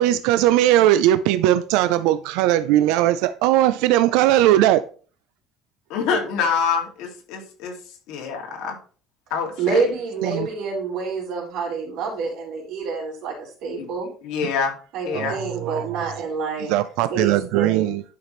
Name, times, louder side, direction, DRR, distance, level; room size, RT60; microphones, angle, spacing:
voice 1, 0.0-4.8 10.2-10.5 14.4-14.5 15.1-16.0 16.6-18.0, right 13 dB, 80° right, 0.5 m, -19 dB
voice 2, 5.9-7.8 8.1-8.8 9.3-9.5 13.8-13.9 14.2-14.7 15.1-15.4, left 6 dB, 70° left, 2.4 m, -25 dB
voice 3, 9.6-14.1 14.9-16.7 17.1-17.9, right 4 dB, 60° right, 4.2 m, -27 dB
11.0 x 6.0 x 3.2 m
cardioid pair, 170°, 0 cm